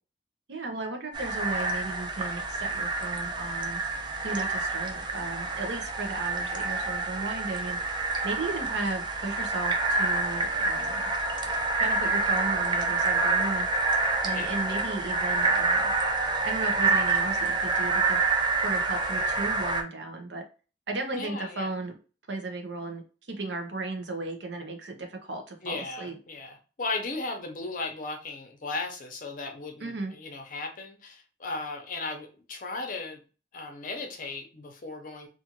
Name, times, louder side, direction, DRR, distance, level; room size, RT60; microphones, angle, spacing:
voice 1, 0.5-3.8 4.2-7.8 8.2-11.1 11.8-13.7 14.2-15.9 16.4-18.2 18.6-20.4 20.9-22.0 22.3-23.0 23.3-26.2 29.8-30.1, right 3 dB, 75° right, 4 dB, 0.7 m, -35 dB
sound 1, 1.1-19.8, right 3 dB, 25° right, 0.4 m, -27 dB
voice 2, 21.1-21.7 25.6-33.2 33.5-35.3, left 3 dB, 50° left, 4 dB, 0.6 m, -36 dB
2.6 x 2.4 x 2.9 m, 0.35 s
head